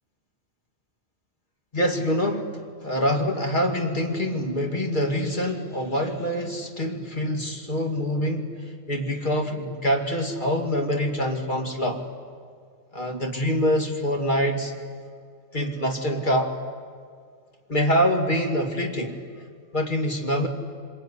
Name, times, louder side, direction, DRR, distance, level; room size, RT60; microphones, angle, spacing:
voice 1, 1.7-2.5 2.8-12.0 12.9-14.7 15.5-16.6 17.7-19.2 19.7-20.5, equal, 40° left, 3 dB, 2.5 m, -25 dB
25.5 x 21.5 x 9.9 m, 2.1 s
omnidirectional pair, 1.3 m